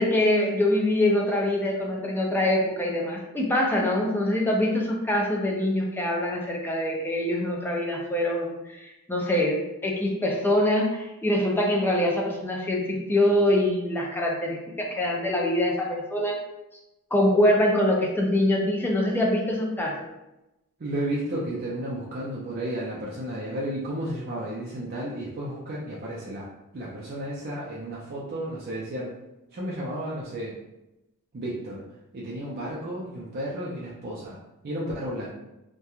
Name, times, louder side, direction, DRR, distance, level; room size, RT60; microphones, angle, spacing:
voice 1, 0.0-16.4 17.1-20.1, left 1 dB, 10° left, -1 dB, 0.4 m, -24 dB
voice 2, 20.8-26.5 26.7-29.1 29.5-30.5 31.3-31.8 32.1-34.4 34.6-35.3, right 1 dB, 45° right, -6 dB, 0.5 m, -32 dB
2.9 x 2.2 x 2.3 m, 0.94 s
head